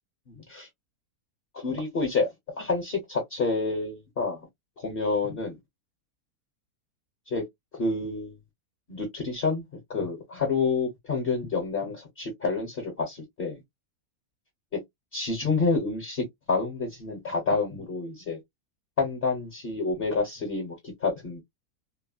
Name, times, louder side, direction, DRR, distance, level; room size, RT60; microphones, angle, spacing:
voice 1, 0.3-0.7 1.5-2.3 2.6-4.5 4.8-5.6 7.3-7.4 7.7-8.4 8.9-9.6 9.9-13.6 15.1-18.4 19.0-21.4, left 4 dB, 45° left, 1.0 m, -28 dB
3.0 x 2.0 x 2.4 m
omnidirectional pair, 1.6 m